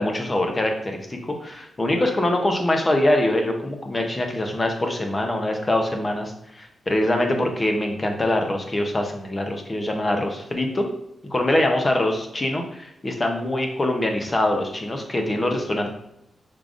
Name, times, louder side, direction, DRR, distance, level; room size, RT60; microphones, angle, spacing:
voice 1, 0.0-10.9 11.3-15.9, left 1 dB, 20° left, 3 dB, 0.6 m, -23 dB
5.1 x 3.7 x 2.5 m, 0.81 s
wide cardioid pair, 150°, 0 cm